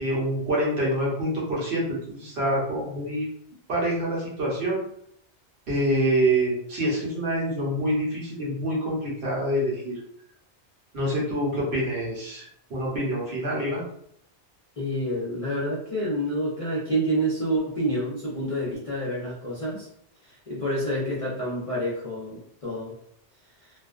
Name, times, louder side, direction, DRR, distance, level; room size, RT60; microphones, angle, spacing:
voice 1, 0.0-3.3 3.7-4.8 5.7-10.0 10.9-13.8, right 1 dB, 65° right, -4 dB, 1.1 m, -26 dB
voice 2, 14.8-19.9 20.3-22.9, right 1 dB, 40° left, -7 dB, 0.5 m, -28 dB
2.4 x 2.2 x 2.3 m, 0.68 s
omnidirectional pair, 1.1 m